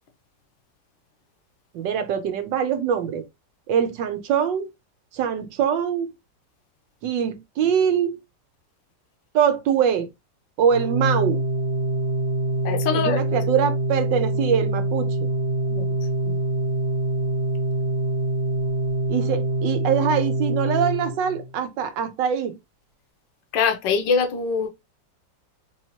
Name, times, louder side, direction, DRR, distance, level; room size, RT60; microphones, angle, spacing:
voice 1, 1.7-3.2 3.7-4.7 5.1-6.2 7.0-8.2 9.3-10.1 10.6-11.4 12.9-15.3 19.1-22.5, right 8 dB, 85° right, 1.4 m, -23 dB
Organ, 10.7-21.6, right 1 dB, 70° right, 1.0 m, -25 dB
voice 2, 12.6-13.2 15.7-15.9 16.2-16.4 23.5-24.7, left 6 dB, 80° left, 1.4 m, -23 dB
3.9 x 3.1 x 2.9 m
omnidirectional pair, 2.0 m